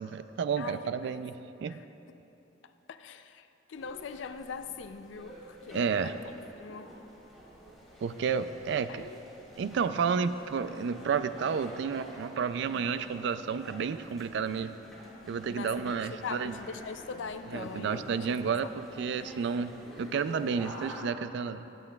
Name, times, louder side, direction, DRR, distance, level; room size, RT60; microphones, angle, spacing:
voice 1, 0.0-1.4 1.6-1.8 5.7-6.1 8.0-9.1 9.6-14.7 15.3-16.6 17.5-21.7, right 6 dB, 65° right, 12 dB, 0.3 m, -31 dB
voice 2, 0.6-1.2 1.7-1.8 2.9-6.2 6.6-7.0 8.9-9.2 15.5-18.3, left 5 dB, 75° left, 10 dB, 0.4 m, -42 dB
sound 1, 3.7-21.0, equal, ahead, 1.8 m, -48 dB
19.0 x 7.7 x 2.3 m, 3.0 s
head